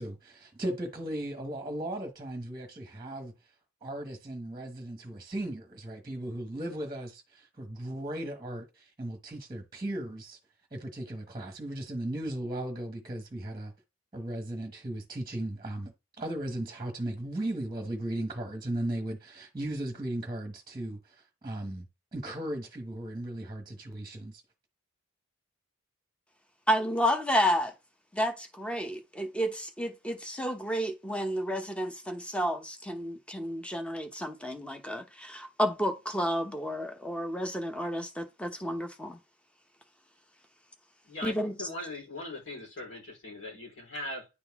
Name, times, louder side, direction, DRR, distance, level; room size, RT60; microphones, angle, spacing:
voice 1, 0.0-3.5 3.8-10.4 10.7-13.7 14.1-21.9 22.1-24.4, right 1 dB, 20° right, 1.0 m, -36 dB
voice 2, 26.7-27.7 28.1-39.2 41.2-41.5, equal, 5° left, 0.8 m, -31 dB
voice 3, 41.0-44.3, left 1 dB, 70° left, 4.1 m, -40 dB
9.9 x 3.9 x 3.5 m
head